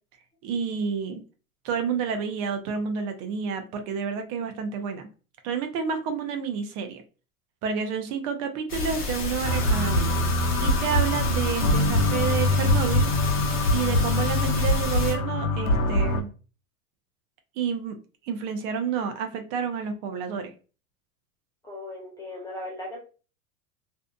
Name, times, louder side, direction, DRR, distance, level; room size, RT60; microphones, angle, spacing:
voice 1, 0.4-1.2 1.6-5.1 5.4-7.0 7.6-10.2 10.6-13.1 13.7-16.3 17.6-18.0 18.2-20.5, right 7 dB, 45° right, 7 dB, 0.7 m, -29 dB
sound 1, 8.7-15.1, left 4 dB, 30° left, 0.9 m, -31 dB
sound 2, 9.4-16.2, left 1 dB, 60° left, 0.7 m, -24 dB
voice 2, 21.6-23.0, left 1 dB, 10° left, -3 dB, 0.4 m, -37 dB
2.6 x 2.3 x 2.3 m, 0.35 s
hypercardioid pair, 100°, 45 cm